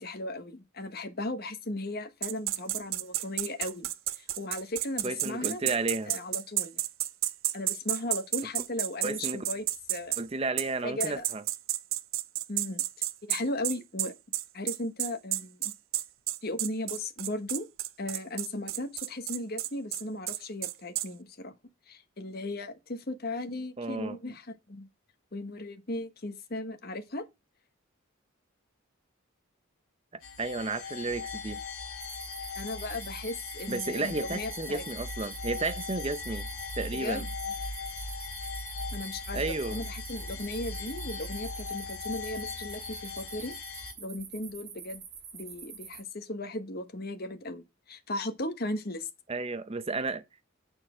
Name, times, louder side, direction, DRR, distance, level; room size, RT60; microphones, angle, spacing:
voice 1, 0.0-3.9 4.2-5.7 6.1-6.8 7.5-10.2 10.8-11.3 12.5-12.8 13.3-14.1 14.5-15.7 16.4-17.7 18.0-21.5 21.9-24.9 25.3-27.2 32.6-34.8 36.9-37.3 38.9-43.5 44.0-45.0 45.3-49.1, left 1 dB, 50° left, 1.1 m, -36 dB
sound 1, 2.2-10.2 10.6-10.7 11.0-21.1, right 15 dB, 75° right, 0.5 m, -31 dB
voice 2, 5.0-6.1 9.0-9.4 10.2-11.4 23.8-24.2 30.1-31.6 33.7-36.5 36.8-37.2 39.3-39.8 49.3-50.2, right 3 dB, 30° right, 0.6 m, -32 dB
sound 2, 30.2-43.9, left 4 dB, 85° left, 1.7 m, -39 dB
sound 3, 32.0-46.0, right 6 dB, 55° right, 4.0 m, -46 dB
9.0 x 4.3 x 4.9 m
head